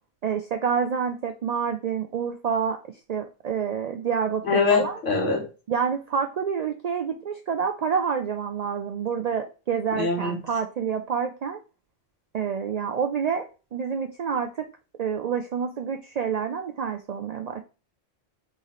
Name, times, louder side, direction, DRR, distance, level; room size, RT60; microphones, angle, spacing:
voice 1, 0.2-2.8 3.1-5.0 5.7-11.6 12.3-14.7 15.0-17.6, right 6 dB, 60° right, 0.4 m, -28 dB
voice 2, 4.5-5.4 9.9-10.3, left 4 dB, 85° left, 1.8 m, -23 dB
4.0 x 3.8 x 3.0 m
omnidirectional pair, 1.2 m